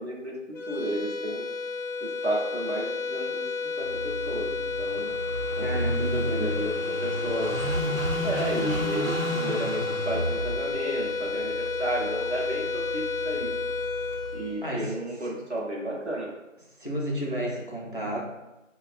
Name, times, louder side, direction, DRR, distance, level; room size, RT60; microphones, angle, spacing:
voice 1, 0.0-1.4 2.0-3.4 3.8-5.2 5.6-7.5 8.2-13.5 14.3-16.3, right 1 dB, 55° right, -4 dB, 1.1 m, -32 dB
sound 1, 0.5-15.1, left 4 dB, 85° left, 0.6 m, -31 dB
Car passing by / Idling, 3.9-14.5, right 1 dB, 85° right, 0.9 m, -33 dB
voice 2, 5.6-6.5 14.6-15.3 16.8-18.2, right 1 dB, 40° left, -3 dB, 0.6 m, -32 dB
4.6 x 2.3 x 2.4 m, 0.99 s
figure-of-eight pair, 175°, 39 cm